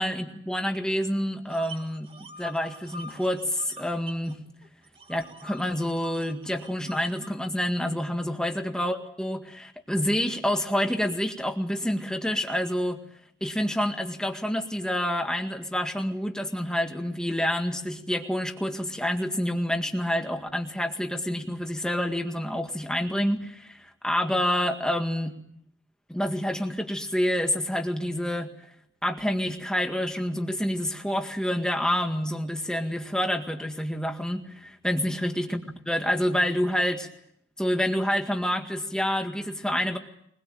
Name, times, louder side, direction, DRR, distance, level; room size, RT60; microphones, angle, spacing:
voice 1, 0.0-2.1 2.4-4.4 5.1-13.0 13.4-25.4 26.1-28.5 29.0-37.1 37.6-40.0, equal, 5° left, 4 dB, 1.9 m, -28 dB
sound 1, 1.5-4.3 4.6-7.3, right 1 dB, 25° right, 2.0 m, -45 dB
23.5 x 21.5 x 9.1 m, 0.72 s
head